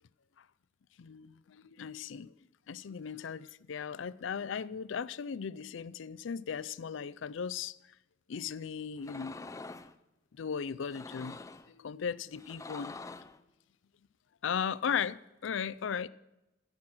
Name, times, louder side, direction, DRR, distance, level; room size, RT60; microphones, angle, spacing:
voice 1, 1.0-2.3 2.7-7.8 8.3-9.3 10.3-11.4 11.7-12.9 14.4-16.1, left 7 dB, 75° left, 0.4 m, -37 dB
sound 1, 9.0-9.9 10.8-11.7 12.4-13.4, left 3 dB, 15° left, 0.4 m, -45 dB
16.5 x 7.3 x 6.2 m
head